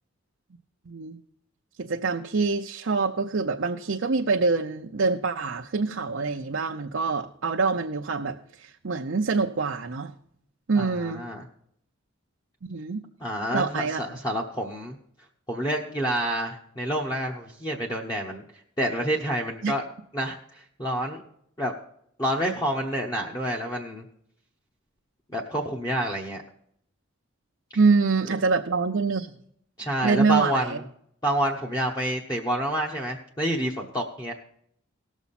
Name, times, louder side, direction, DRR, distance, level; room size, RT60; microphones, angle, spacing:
voice 1, 0.9-1.2 1.8-10.1 10.7-11.2 12.7-13.0 13.5-14.0 19.6-19.7 27.7-29.3 30.0-30.8, right 4 dB, 60° right, 2 dB, 0.6 m, -25 dB
voice 2, 10.7-11.4 13.2-15.0 15.5-18.4 18.8-19.8 20.1-20.4 20.8-21.2 21.6-21.7 22.2-24.0 25.3-26.4 29.8-30.8 31.2-34.3, right 1 dB, 20° left, -1 dB, 1.0 m, -28 dB
18.0 x 7.1 x 4.2 m, 0.70 s
head